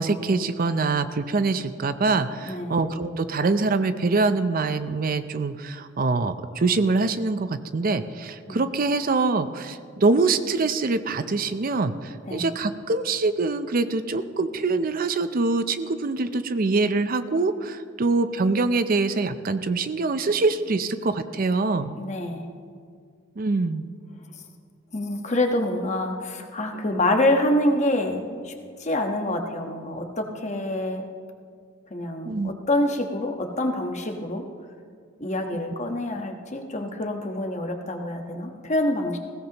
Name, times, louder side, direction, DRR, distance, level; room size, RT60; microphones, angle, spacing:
voice 1, 0.0-21.9 23.4-23.9 32.2-32.5, right 3 dB, 45° right, 11 dB, 0.5 m, -24 dB
voice 2, 2.5-2.8 8.5-8.6 12.3-12.5 22.0-22.4 24.9-28.5 28.8-31.1 31.9-34.4 35.2-39.2, left 1 dB, 35° left, 4 dB, 1.3 m, -26 dB
20.0 x 16.5 x 3.0 m, 2.1 s
head